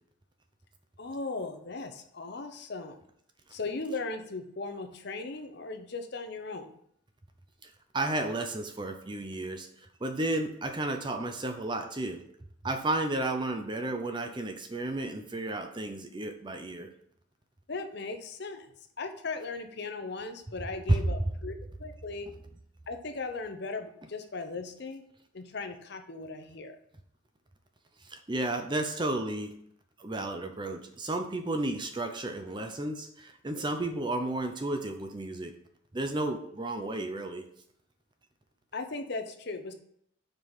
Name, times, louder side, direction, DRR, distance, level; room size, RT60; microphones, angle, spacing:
voice 1, 1.0-3.0 3.5-6.7 17.7-18.7 19.0-21.5 21.8-22.3 22.9-25.0 25.3-26.8 38.7-39.7, left 3 dB, 50° left, 6 dB, 0.7 m, -37 dB
voice 2, 7.6-9.7 10.0-12.2 12.6-16.9 20.9-21.1 28.1-29.5 30.0-35.5 35.9-37.4, right 2 dB, 20° right, 6 dB, 0.6 m, -32 dB
5.2 x 4.7 x 5.6 m, 0.70 s
head